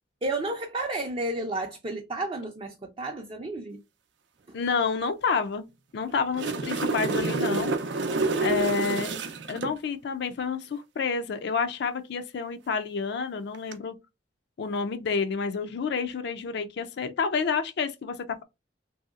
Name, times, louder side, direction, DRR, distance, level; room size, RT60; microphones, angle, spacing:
voice 1, 0.2-3.8 4.5-4.6, right 2 dB, 30° right, 0.4 m, -32 dB
voice 2, 4.5-5.7 5.9-7.7 8.4-9.1 9.5-13.9 14.6-18.4, left 5 dB, 65° left, 0.4 m, -29 dB
sound 1, 6.1-9.7 13.5-13.7, right 3 dB, 85° right, 0.5 m, -28 dB
3.0 x 2.7 x 2.4 m
head